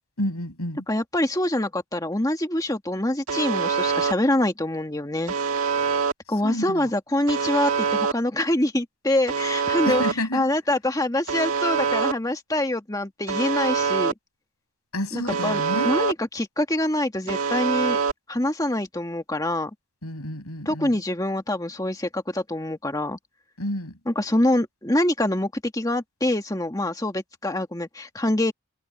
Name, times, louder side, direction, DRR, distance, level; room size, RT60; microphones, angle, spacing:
voice 1, 0.2-0.8 6.4-6.9 9.9-10.5 14.9-16.0 20.0-21.0 23.6-23.9, left 1 dB, 85° left, 7.7 m, -30 dB
voice 2, 0.9-5.3 6.3-10.0 10.3-14.1 15.1-18.0 18.3-19.7 20.6-23.2 24.1-28.5, left 1 dB, 15° left, 1.8 m, -25 dB
Alarm, 3.3-4.1 5.3-6.1 7.3-8.1 9.3-10.1 11.3-12.1 13.3-14.1 15.3-16.1 17.3-18.1, right 5 dB, 75° right, 1.6 m, -24 dB
head